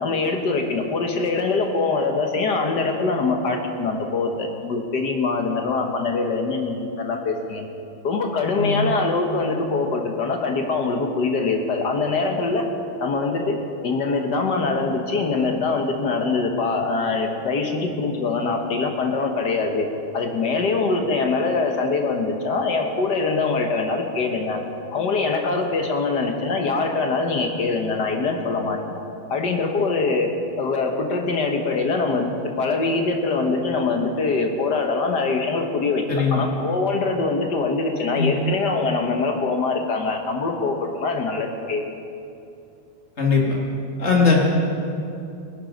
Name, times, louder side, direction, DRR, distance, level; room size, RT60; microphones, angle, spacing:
voice 1, 0.0-7.7 8.0-12.6 13.0-13.6 13.8-19.9 20.1-24.6 24.9-29.0 29.3-30.3 30.6-41.8, left 3 dB, 55° left, 3 dB, 1.6 m, -23 dB
voice 2, 8.5-8.9 36.1-36.4 38.1-38.3 43.2-43.4 44.0-44.4, left 5 dB, 30° left, -2 dB, 2.5 m, -19 dB
19.0 x 11.0 x 5.3 m, 2.7 s
omnidirectional pair, 2.4 m